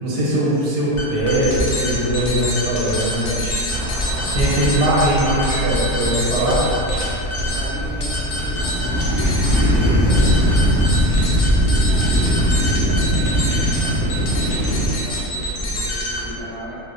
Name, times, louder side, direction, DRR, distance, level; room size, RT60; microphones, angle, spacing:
voice 1, 0.0-3.6 4.3-6.6, right 1 dB, 85° right, -6 dB, 1.3 m, -20 dB
sound 1, 0.9-16.4, equal, 90° left, 0.6 m, -25 dB
sound 2, 3.7-14.9, equal, 50° right, 0.3 m, -21 dB
voice 2, 7.4-13.5 13.9-16.8, equal, 40° left, -18 dB, 1.2 m, -36 dB
2.8 x 2.0 x 2.4 m, 2.9 s
omnidirectional pair, 1.8 m